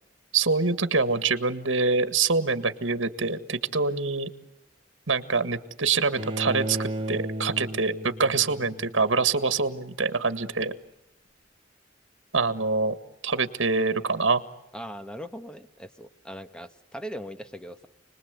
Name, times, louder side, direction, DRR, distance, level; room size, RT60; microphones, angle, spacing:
voice 1, 0.3-4.3 5.1-10.7 12.3-13.0 13.2-14.4, right 4 dB, 80° right, 11 dB, 1.8 m, -25 dB
Bowed string instrument, 6.2-9.2, right 1 dB, 30° right, 1.6 m, -34 dB
voice 2, 14.7-17.9, equal, 5° left, 9 dB, 1.4 m, -39 dB
30.0 x 20.5 x 8.3 m, 0.86 s
head